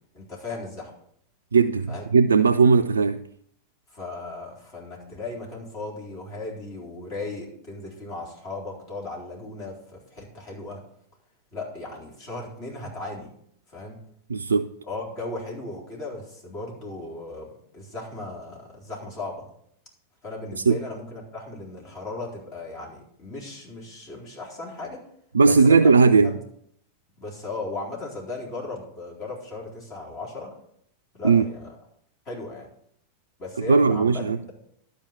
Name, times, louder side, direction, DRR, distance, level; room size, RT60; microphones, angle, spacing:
voice 1, 0.1-0.9 1.9-2.0 3.9-10.8 11.5-13.3 13.7-14.0 14.9-19.4 20.2-25.0 25.5-25.9 26.2-26.4 27.2-30.5 31.1-31.7 32.3-32.7 33.4-34.5, left 2 dB, 40° left, 4.0 m, -36 dB
voice 2, 1.5-3.2 14.3-14.7 20.5-20.8 25.3-26.4 31.2-31.4 33.6-34.4, right 4 dB, 70° right, 0.3 m, -18 dB
12.0 x 5.1 x 6.6 m
figure-of-eight pair, 90°, 0 cm